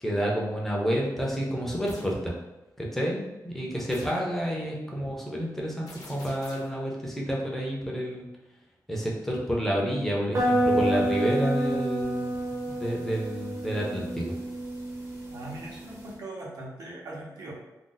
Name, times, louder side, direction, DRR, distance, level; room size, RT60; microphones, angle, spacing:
voice 1, 0.0-2.3 2.8-8.3 8.9-14.4, equal, 5° left, -3 dB, 0.5 m, -29 dB
sound 1, 1.9-2.2 3.9-4.3 5.9-6.8, left 2 dB, 65° left, 0.8 m, -47 dB
sound 2, 10.3-16.1, right 1 dB, 35° right, 0.7 m, -29 dB
voice 2, 15.3-17.5, right 2 dB, 65° right, -3 dB, 0.9 m, -41 dB
2.5 x 2.1 x 3.8 m, 1.0 s
wide cardioid pair, 165°, 7 cm